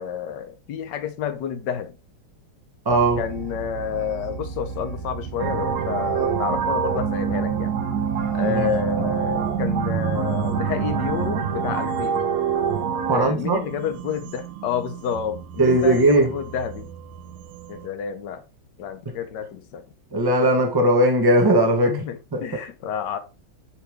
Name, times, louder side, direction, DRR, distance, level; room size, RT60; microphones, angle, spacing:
voice 1, 0.0-2.0 3.2-7.7 8.3-12.3 13.1-16.9 17.7-18.4 18.8-19.8 21.8-23.2, left 8 dB, 65° left, 1.2 m, -29 dB
voice 2, 2.8-3.2 8.4-8.7 13.1-13.6 15.6-16.3 20.1-22.4, right 1 dB, 25° right, 0.5 m, -19 dB
sound 1, 2.9-17.9, right 5 dB, 85° right, 1.6 m, -37 dB
sound 2, 5.4-13.2, right 7 dB, 65° right, 1.0 m, -25 dB
5.8 x 4.8 x 3.4 m
omnidirectional pair, 2.3 m